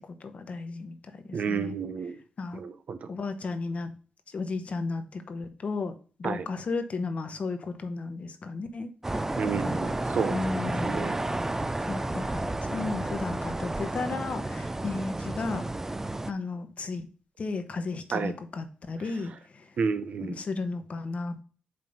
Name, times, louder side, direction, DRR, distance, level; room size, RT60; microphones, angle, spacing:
voice 1, 0.1-1.0 1.3-1.8 2.4-2.6 3.1-3.9 4.3-5.9 6.2-8.9 9.6-9.9 10.3-11.2 11.9-17.1 17.4-19.8 20.4-21.4, left 3 dB, 50° left, 8 dB, 1.1 m, -34 dB
voice 2, 1.3-2.2 2.5-3.1 6.2-6.5 9.4-10.5 10.8-11.2 18.1-18.3 19.8-20.4, right 5 dB, 60° right, 10 dB, 0.7 m, -30 dB
sound 1, 9.0-16.3, right 2 dB, 15° right, 0.4 m, -31 dB
5.3 x 3.7 x 5.4 m, 0.39 s
cardioid pair, 70°, 3 cm